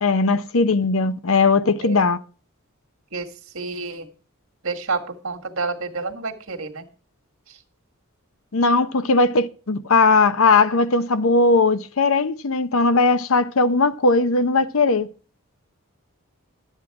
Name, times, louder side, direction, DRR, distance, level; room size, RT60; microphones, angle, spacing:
voice 1, 0.0-2.2 8.5-15.1, left 3 dB, 65° left, 0.7 m, -18 dB
voice 2, 3.5-4.1 4.6-6.9, right 4 dB, 65° right, 1.8 m, -29 dB
12.0 x 8.2 x 4.7 m
head